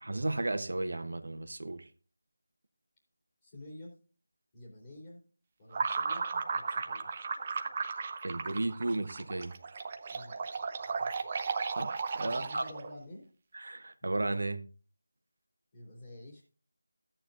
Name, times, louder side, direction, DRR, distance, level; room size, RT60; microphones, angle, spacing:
voice 1, 0.0-1.8 8.2-9.5 11.8-12.6 13.5-14.6, right 2 dB, 70° right, 9 dB, 1.2 m, -34 dB
voice 2, 3.4-3.9 4.5-5.2 5.6-7.1 10.1-10.4 11.0-11.2 12.2-13.3 15.7-16.4, left 1 dB, 25° left, -5 dB, 3.4 m, -49 dB
sound 1, 5.7-12.9, right 5 dB, 30° right, 0.7 m, -35 dB
13.5 x 8.9 x 2.7 m, 0.36 s
figure-of-eight pair, 170°, 0 cm